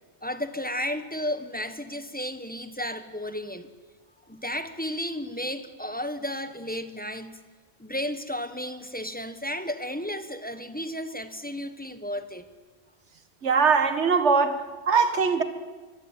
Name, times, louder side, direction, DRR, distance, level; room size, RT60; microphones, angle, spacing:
voice 1, 0.2-3.7 4.3-7.4 7.8-12.5, left 1 dB, 10° left, 1.4 m, -33 dB
voice 2, 13.4-15.4, right 5 dB, 80° right, 1.9 m, -22 dB
24.0 x 24.0 x 9.2 m
omnidirectional pair, 1.2 m